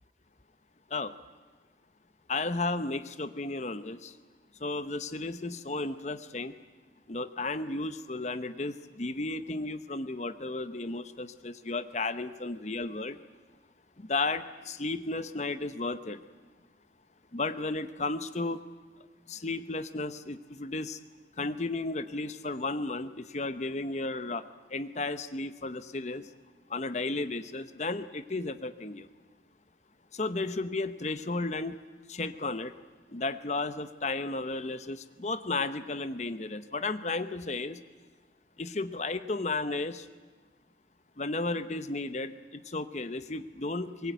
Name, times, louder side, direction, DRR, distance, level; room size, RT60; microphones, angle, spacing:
voice 1, 2.3-4.2 4.6-6.5 7.1-13.2 14.0-16.2 17.3-18.6 19.3-21.0 21.4-26.3 26.7-29.1 30.1-31.8 32.1-32.7 33.1-37.8 38.6-40.1 41.2-44.1, left 3 dB, 40° left, 12 dB, 0.9 m, -34 dB
23.0 x 21.5 x 9.2 m, 1.3 s
head